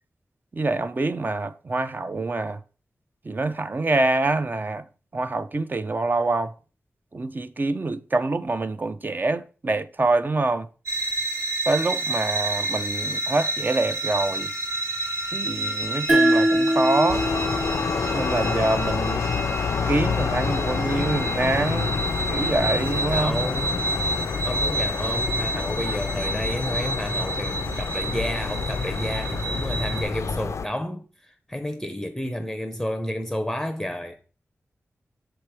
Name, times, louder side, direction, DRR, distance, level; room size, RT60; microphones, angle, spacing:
voice 1, 0.5-2.6 3.3-4.8 5.1-6.5 7.1-10.7 11.7-14.5 15.3-17.3 18.1-19.2 19.9-22.0 22.3-23.5, right 2 dB, 40° right, 0.4 m, -25 dB
sound 1, 10.9-30.0, right 1 dB, 85° right, 1.8 m, -30 dB
sound 2, 16.1-19.3, right 1 dB, 20° right, 1.3 m, -23 dB
sound 3, 17.1-30.7, left 6 dB, 75° left, 0.4 m, -28 dB
voice 2, 23.1-23.9 24.4-34.2, left 1 dB, 5° left, 0.6 m, -31 dB
6.7 x 3.0 x 4.7 m
wide cardioid pair, 70°, 5 cm